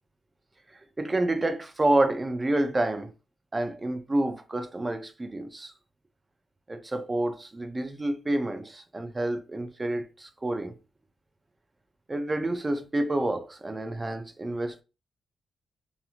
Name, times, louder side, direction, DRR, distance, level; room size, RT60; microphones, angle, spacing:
voice 1, 1.0-3.1 3.5-5.7 6.7-10.7 12.1-14.8, right 1 dB, 20° right, 0.4 m, -28 dB
2.9 x 2.5 x 2.4 m
wide cardioid pair, 140°, 0 cm